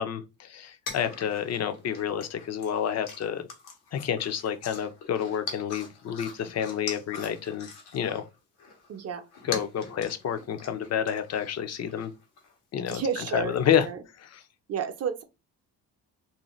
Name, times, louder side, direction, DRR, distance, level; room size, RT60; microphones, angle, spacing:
voice 1, 0.0-3.5 3.9-8.2 9.4-12.1 12.7-13.9 14.2-14.4, left 8 dB, 45° left, 0.6 m, -29 dB
sound 1, 0.9-8.3 8.6-12.5 12.9-13.8, left 5 dB, 80° left, 1.0 m, -43 dB
voice 2, 8.9-9.3 12.9-13.6 13.9-14.0 14.7-15.2, right 6 dB, 40° right, 0.7 m, -31 dB
2.6 x 2.1 x 3.1 m
supercardioid pair, 75°, 37 cm